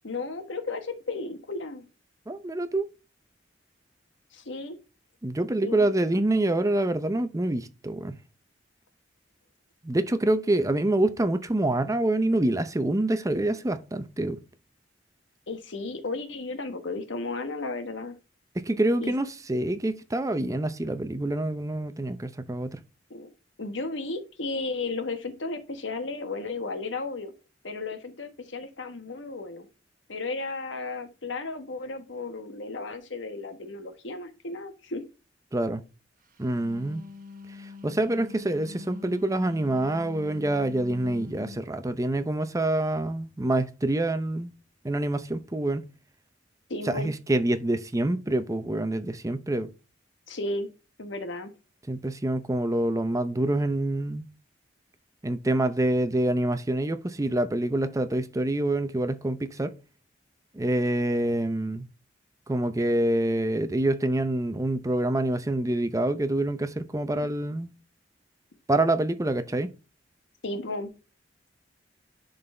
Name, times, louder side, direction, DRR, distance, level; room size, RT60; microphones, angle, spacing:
voice 1, 0.0-1.8 4.3-4.8 5.6-5.9 15.5-18.2 19.0-19.1 23.1-23.3 23.6-27.3 27.6-29.7 30.1-35.0 46.7-47.1 50.3-50.7 51.0-51.5 70.4-70.9, left 3 dB, 85° left, 1.3 m, -34 dB
voice 2, 2.3-2.9 5.2-8.1 9.8-14.4 18.7-22.8 35.5-35.8 36.4-37.1 37.8-44.5 44.8-45.9 46.9-49.7 51.9-54.3 55.2-59.8 60.5-61.8 62.5-67.7 68.7-69.7, right 1 dB, 20° right, 0.6 m, -26 dB
Wind instrument woodwind instrument, 36.4-41.7, left 5 dB, 50° right, 1.2 m, -44 dB
11.0 x 4.0 x 3.3 m
head